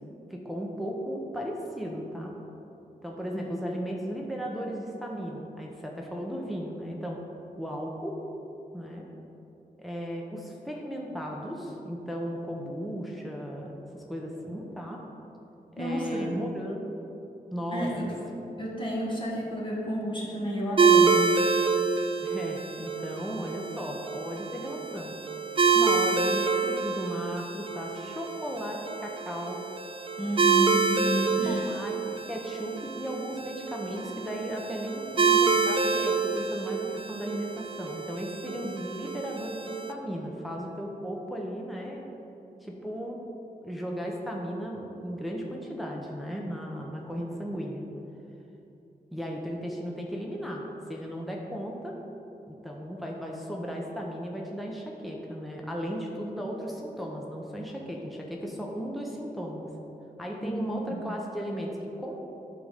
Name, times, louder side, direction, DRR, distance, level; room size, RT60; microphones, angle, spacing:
voice 1, 0.3-2.4 3.0-7.2 7.6-8.2 8.7-9.1 9.8-15.0 15.8-17.0 17.5-18.1 22.2-25.1 25.7-29.6 31.5-42.0 42.6-43.2 43.6-47.8 49.1-50.6 50.9-52.0 52.5-59.7 60.2-62.3, equal, ahead, -1 dB, 0.9 m, -35 dB
voice 2, 15.8-16.3 17.7-18.2 18.6-21.2 30.2-31.6 60.4-61.0, equal, 35° left, -5 dB, 1.6 m, -31 dB
sound 1, 20.8-39.9, right 5 dB, 35° right, 0.5 m, -27 dB
11.5 x 3.9 x 6.6 m, 2.9 s
wide cardioid pair, 120°, 15 cm